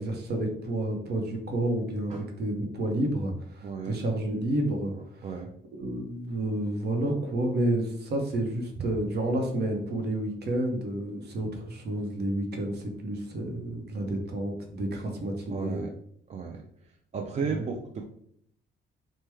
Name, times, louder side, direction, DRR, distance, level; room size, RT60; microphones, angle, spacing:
voice 1, 0.0-5.2 5.7-15.8 17.4-17.7, right 1 dB, 55° right, 2 dB, 0.8 m, -30 dB
voice 2, 3.6-4.0 5.2-5.5 15.5-15.9 16.3-16.6 17.1-18.0, right 5 dB, 35° right, 2 dB, 0.4 m, -34 dB
3.0 x 2.2 x 3.4 m, 0.68 s
cardioid pair, 90°, 20 cm